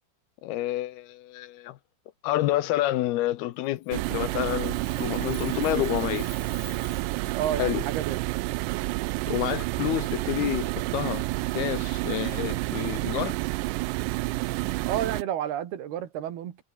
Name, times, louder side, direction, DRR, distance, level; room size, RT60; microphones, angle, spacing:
voice 1, 0.4-1.8 2.2-6.3 7.6-7.9 9.3-11.3 11.5-13.4, left 15 dB, 75° left, 2.8 m, -29 dB
Chime, 3.8-8.9, left 11 dB, 55° left, 2.5 m, -50 dB
sound 1, 3.9-15.2, right 23 dB, 90° right, 2.8 m, -29 dB
voice 2, 7.3-8.2 14.8-16.6, right 10 dB, 70° right, 3.8 m, -30 dB
omnidirectional pair, 4.8 m